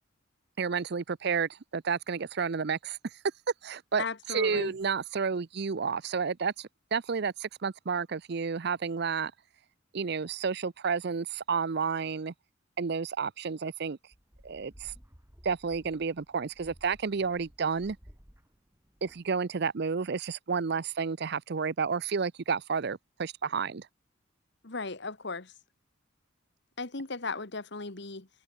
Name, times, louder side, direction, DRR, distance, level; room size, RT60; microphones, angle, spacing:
voice 1, 0.6-3.1 3.6-9.3 9.9-12.3 12.8-14.0 14.4-14.9 15.4-18.0 19.0-23.9, right 5 dB, 55° right, 0.6 m, -31 dB
voice 2, 4.0-4.7 24.6-25.5 26.8-28.3, left 3 dB, 60° left, 1.8 m, -36 dB
sound 1, 14.1-19.6, equal, 15° right, 3.4 m, -56 dB
head